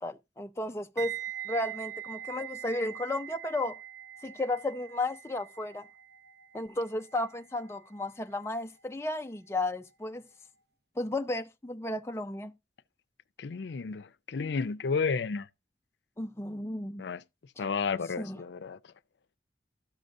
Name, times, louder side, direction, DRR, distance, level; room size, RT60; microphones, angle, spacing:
voice 1, 0.0-1.2 1.5-3.8 4.2-5.9 6.5-10.2 11.0-12.5 16.2-17.0 18.2-18.4, left 2 dB, 15° left, 0.4 m, -33 dB
sound 1, 1.0-9.9 10.2-10.5, right 11 dB, 65° right, 0.8 m, -43 dB
voice 2, 13.4-15.5 17.0-17.2 17.6-18.8, left 5 dB, 85° left, 0.5 m, -32 dB
13.0 x 6.6 x 2.6 m
head